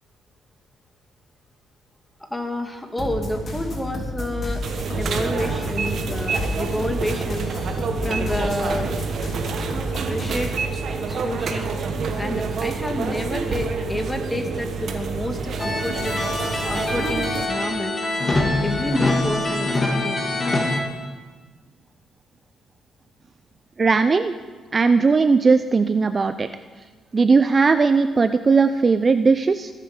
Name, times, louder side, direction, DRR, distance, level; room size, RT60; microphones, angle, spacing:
voice 1, 2.2-4.6 5.0-7.5 8.0-8.9 10.1-10.5 11.1-11.7 12.2-16.3 16.7-18.0 18.4-20.2, left 1 dB, 10° left, 4 dB, 1.9 m, -29 dB
sound 1, 3.0-10.6, equal, 45° left, 3.5 m, -31 dB
sound 2, 4.6-17.5, right 4 dB, 60° right, 1.3 m, -28 dB
sound 3, 15.6-20.8, left 2 dB, 30° left, 2.2 m, -24 dB
voice 2, 23.8-24.3 24.7-26.5 27.1-29.7, right 4 dB, 35° right, 10 dB, 0.5 m, -18 dB
21.5 x 7.5 x 5.1 m, 1.4 s
cardioid pair, 90°, 0 cm